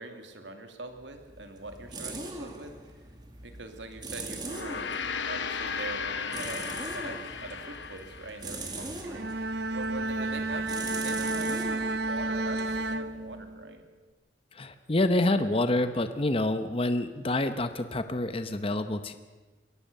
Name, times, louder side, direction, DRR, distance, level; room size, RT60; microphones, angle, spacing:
voice 1, 0.0-2.7 3.4-4.9 5.3-6.7 6.9-9.3 9.7-11.7 12.1-13.9, right 2 dB, 80° right, 5 dB, 2.5 m, -42 dB
sound 1, 1.0-13.6, right 2 dB, 25° right, 2.2 m, -42 dB
Gong, 4.4-9.0, left 5 dB, 80° left, 1.2 m, -36 dB
Bowed string instrument, 9.0-13.7, right 2 dB, 60° right, 0.9 m, -31 dB
voice 2, 14.5-19.1, left 2 dB, 30° left, 10 dB, 0.9 m, -27 dB
22.5 x 17.5 x 6.7 m, 1.3 s
head